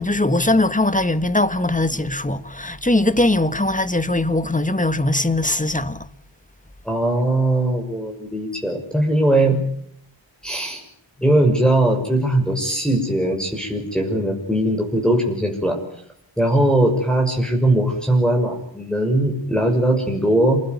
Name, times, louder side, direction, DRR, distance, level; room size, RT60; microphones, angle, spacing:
voice 1, 0.0-6.0, left 2 dB, 15° left, 1.6 m, -20 dB
voice 2, 6.8-9.6 10.4-10.8 11.2-15.8 16.4-20.6, right 1 dB, ahead, 6.4 m, -20 dB
28.5 x 20.0 x 9.6 m
wide cardioid pair, 60°, 45 cm